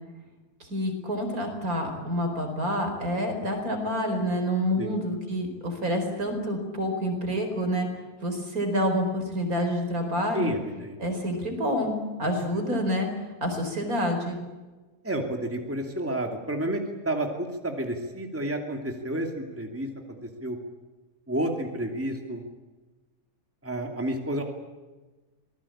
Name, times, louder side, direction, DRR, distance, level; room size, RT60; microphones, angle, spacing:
voice 1, 0.7-7.9 8.2-10.5 11.0-13.1 13.4-14.4, equal, 60° right, 5 dB, 4.9 m, -28 dB
voice 2, 10.3-11.0 15.0-20.6 21.3-22.4 23.6-24.4, right 1 dB, 10° right, 3 dB, 2.7 m, -30 dB
26.0 x 19.5 x 8.7 m, 1.2 s
omnidirectional pair, 1.7 m